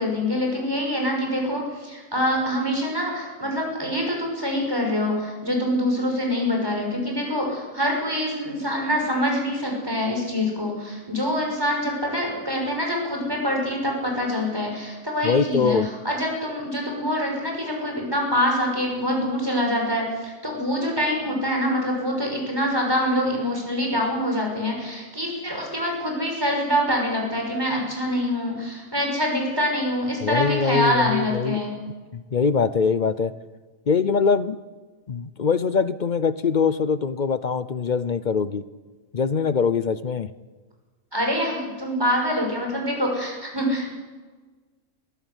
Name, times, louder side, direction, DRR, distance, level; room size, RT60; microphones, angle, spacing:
voice 1, 0.0-15.8 16.0-31.7 41.1-43.9, equal, 15° right, 0 dB, 6.0 m, -25 dB
voice 2, 15.2-15.9 30.2-31.6 32.1-33.3 33.9-34.6 35.1-38.6 39.1-40.3, left 5 dB, 45° left, 14 dB, 0.7 m, -23 dB
22.0 x 14.5 x 8.2 m, 1.4 s
omnidirectional pair, 1.4 m